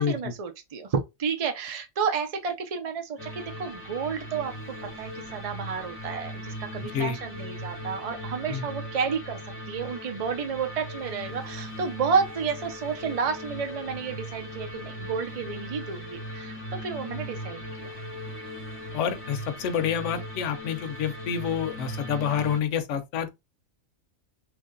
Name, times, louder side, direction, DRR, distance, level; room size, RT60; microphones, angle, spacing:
voice 1, 0.0-4.5 4.8-9.4 9.7-17.9, right 6 dB, 65° right, 0.3 m, -31 dB
sound 1, 3.2-22.6, equal, 10° left, 0.7 m, -39 dB
voice 2, 6.8-7.2 8.5-8.6 18.9-23.3, left 8 dB, 65° left, 0.9 m, -28 dB
3.2 x 2.6 x 3.7 m
omnidirectional pair, 1.4 m